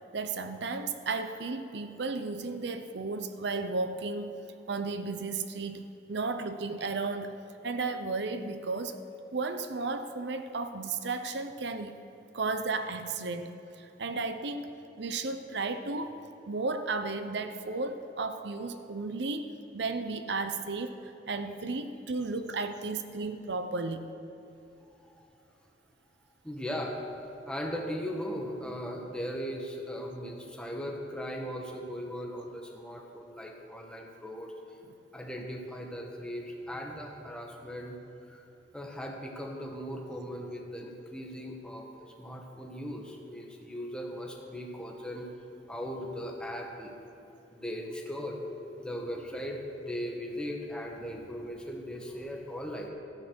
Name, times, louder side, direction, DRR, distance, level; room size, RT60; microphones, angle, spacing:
voice 1, 0.1-4.4 4.7-7.3 7.6-9.0 9.3-12.0 12.3-14.7 15.0-16.2 16.5-24.0 34.9-35.0, right 3 dB, 70° right, 8 dB, 0.7 m, -34 dB
voice 2, 26.4-27.0 27.5-34.5 35.1-37.9 38.3-38.4 38.7-45.3 45.7-46.9 47.5-48.4 48.8-52.9, equal, 5° left, 0 dB, 1.4 m, -38 dB
13.5 x 8.8 x 6.2 m, 3.0 s
head